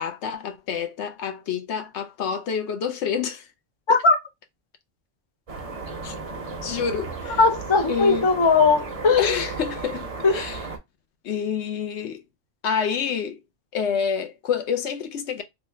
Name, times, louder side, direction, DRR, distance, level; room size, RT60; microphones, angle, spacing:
voice 1, 0.0-3.5 3.9-4.0 6.0-6.1 6.6-7.4 7.9-8.3 9.2-10.1 10.3-10.6 11.2-12.2 12.6-13.4 13.7-15.4, left 7 dB, 70° left, 0.8 m, -27 dB
sound 1, 5.5-10.8, right 3 dB, 40° right, 0.6 m, -34 dB
voice 2, 7.4-9.3 10.2-10.4, left 4 dB, 40° left, 0.4 m, -18 dB
3.0 x 2.1 x 3.2 m
omnidirectional pair, 1.3 m